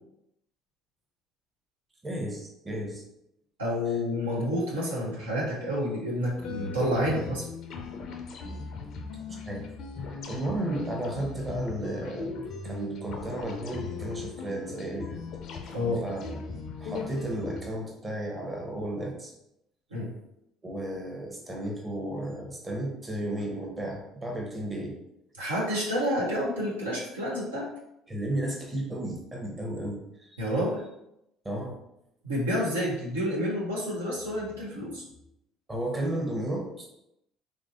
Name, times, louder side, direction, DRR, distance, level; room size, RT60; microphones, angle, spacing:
voice 1, 2.0-3.0 9.3-9.7 10.0-15.2 16.0-16.4 16.8-19.3 20.6-24.9 28.1-30.4 31.4-31.8 35.7-36.9, right 1 dB, 25° right, 1 dB, 0.8 m, -34 dB
voice 2, 3.6-7.4 15.7-16.0 19.9-20.1 25.4-27.7 30.4-30.8 32.2-35.0, equal, 90° right, -4 dB, 0.7 m, -29 dB
sound 1, 6.4-17.6, left 4 dB, 55° left, 0.4 m, -38 dB
3.1 x 2.4 x 2.5 m, 0.82 s
hypercardioid pair, 60°, 0 cm